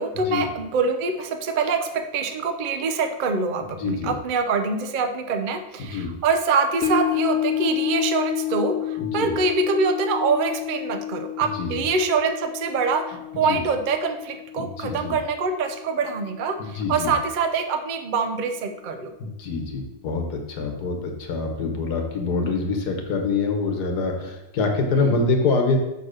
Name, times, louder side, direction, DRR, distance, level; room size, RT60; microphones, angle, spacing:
voice 1, 0.0-19.1 24.9-25.2, right 4 dB, 75° right, 7 dB, 0.4 m, -25 dB
voice 2, 3.8-4.1 5.8-6.1 9.0-9.3 11.6-11.7 13.5-13.6 14.6-15.2 16.6-17.1 19.2-25.8, left 4 dB, 75° left, 3 dB, 1.6 m, -25 dB
sound 1, 6.8-17.2 17.6-17.7, left 10 dB, 45° left, 0.9 m, -30 dB
5.8 x 4.1 x 6.3 m, 0.96 s
omnidirectional pair, 1.8 m